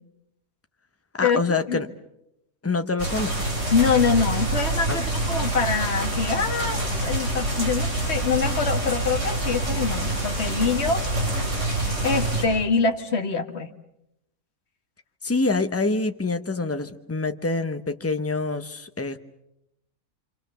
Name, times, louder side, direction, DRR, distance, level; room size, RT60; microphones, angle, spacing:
voice 1, 1.2-1.9 2.6-3.5 4.9-5.0 15.2-19.2, left 3 dB, 10° left, 8 dB, 0.9 m, -26 dB
sound 1, 3.0-12.4, right 2 dB, 55° right, 6.0 m, -26 dB
voice 2, 3.7-11.0 12.0-13.7, left 5 dB, 50° left, 5 dB, 1.8 m, -24 dB
27.0 x 26.5 x 6.9 m, 0.84 s
omnidirectional pair, 1.5 m